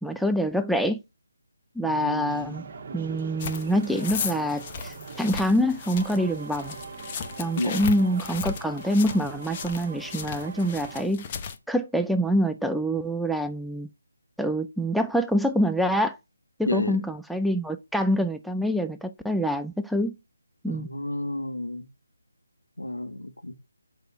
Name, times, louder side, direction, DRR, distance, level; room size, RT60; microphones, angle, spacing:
voice 1, 0.0-1.0 1.8-2.6 2.9-6.7 7.4-11.3 11.7-13.9 14.4-16.2 16.6-20.1 20.6-20.9, equal, ahead, 0.3 m, -25 dB
voice 2, 1.8-2.6 7.6-7.9 16.7-17.0 20.7-21.9 22.8-23.5, left 1 dB, 80° left, 1.5 m, -31 dB
sound 1, 2.3-11.0, right 4 dB, 35° right, 1.3 m, -41 dB
sound 2, 3.4-11.6, left 6 dB, 25° left, 0.7 m, -36 dB
6.5 x 4.7 x 5.7 m
figure-of-eight pair, 155°, 0 cm